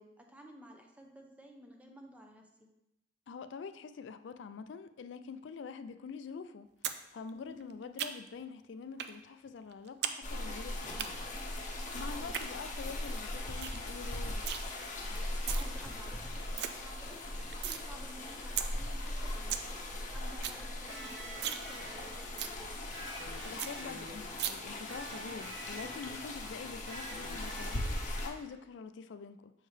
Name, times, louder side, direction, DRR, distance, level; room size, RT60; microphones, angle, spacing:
voice 1, 0.0-2.7 7.3-7.8 11.9-12.4 15.1-19.8 20.1-22.7, equal, 10° right, 2 dB, 0.7 m, -54 dB
voice 2, 3.3-6.7 7.1-11.3 11.9-14.4 23.4-29.5, left 5 dB, 80° left, 11 dB, 0.4 m, -45 dB
sound 1, 6.8-7.0 7.3-8.4 9.0-9.2 9.5-10.2 10.4-11.1 12.1-12.5 12.9-13.0 13.3-13.4 13.6-13.8 14.1-14.6 15.2-15.6 16.1-16.2 16.4-16.7 17.1-17.8 18.2-18.3 18.6-18.7 19.1-19.2 19.3-19.7 20.0-20.1 20.3-20.6 20.9-21.0 21.3-21.6 22.0-22.1 22.4-22.6 23.0-23.1 23.3-23.4 23.6-23.7 24.4-24.5, right 10 dB, 65° right, 0.4 m, -36 dB
sound 2, 10.2-28.3, left 1 dB, 45° left, 0.8 m, -39 dB
Electric guitar, 20.9-28.6, right 1 dB, 85° right, 1.2 m, -48 dB
6.5 x 4.6 x 3.2 m, 0.87 s
head